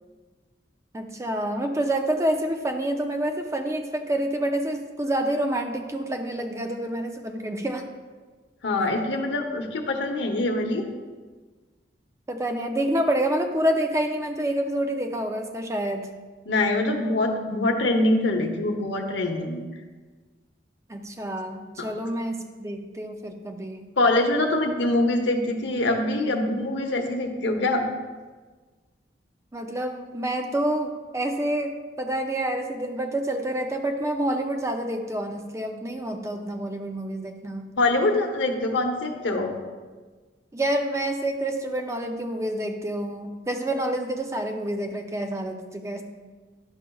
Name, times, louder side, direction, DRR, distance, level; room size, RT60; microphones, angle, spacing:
voice 1, 0.9-7.9 12.3-16.1 20.9-23.9 29.5-37.7 40.5-46.0, right 1 dB, 15° right, 4 dB, 0.5 m, -28 dB
voice 2, 8.6-10.9 16.5-19.6 21.8-21.9 24.0-27.9 37.8-39.5, left 2 dB, 85° left, 3 dB, 0.8 m, -24 dB
10.5 x 6.4 x 2.3 m, 1.4 s
head